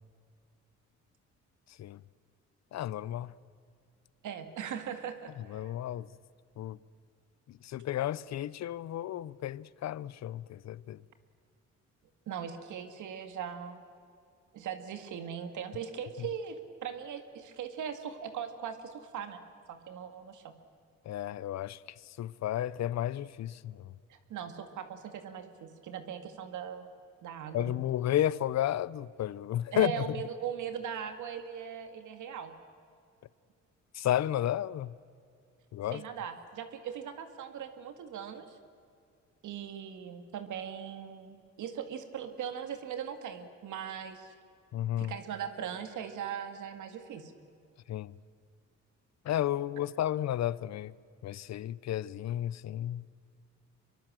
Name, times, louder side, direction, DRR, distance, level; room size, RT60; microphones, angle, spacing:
voice 1, 2.7-3.3 5.5-6.1 6.6-6.8 7.6-11.0 21.1-21.8 22.2-23.8 27.5-30.1 33.9-34.9 35.7-36.0 44.7-45.1 47.9-48.1 49.3-50.9 51.2-53.0, left 12 dB, 60° left, 0.7 m, -32 dB
voice 2, 4.2-5.7 12.3-13.8 14.5-19.4 19.7-20.5 24.1-26.9 27.2-27.8 29.7-32.5 35.9-38.6 39.4-44.3 45.0-47.3, right 8 dB, 75° right, 2.2 m, -40 dB
25.0 x 23.0 x 7.6 m
cardioid pair, 90°, 30 cm